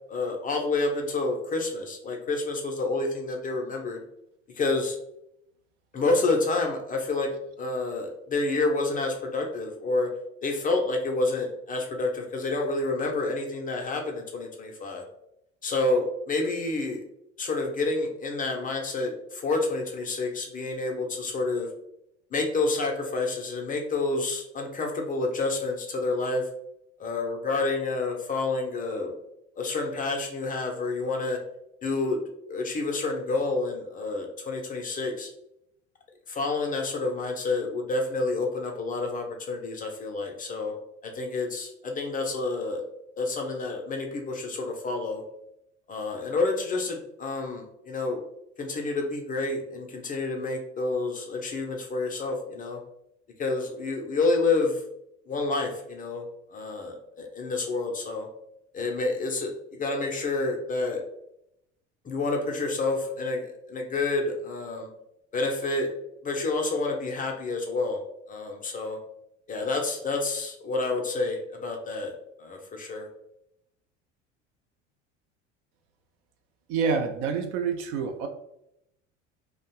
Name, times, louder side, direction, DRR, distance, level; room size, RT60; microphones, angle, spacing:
voice 1, 0.1-4.0 4.5-5.0 5.9-7.3 7.6-10.1 10.4-15.1 15.6-17.0 17.4-21.7 22.3-26.5 27.0-29.1 29.6-31.4 31.8-32.2 32.5-35.3 36.3-40.8 41.0-42.8 43.2-45.2 45.9-48.2 48.6-52.8 53.4-54.8 55.3-56.2 56.5-58.3 58.7-61.0 62.0-64.9 65.3-65.9 66.2-68.0 68.3-69.0 69.5-72.1 72.4-73.1, left 3 dB, 25° left, 2 dB, 0.5 m, -29 dB
voice 2, 76.7-78.3, right 5 dB, 55° right, 6 dB, 0.5 m, -27 dB
2.5 x 2.1 x 2.9 m, 0.79 s
figure-of-eight pair, 65°, 37 cm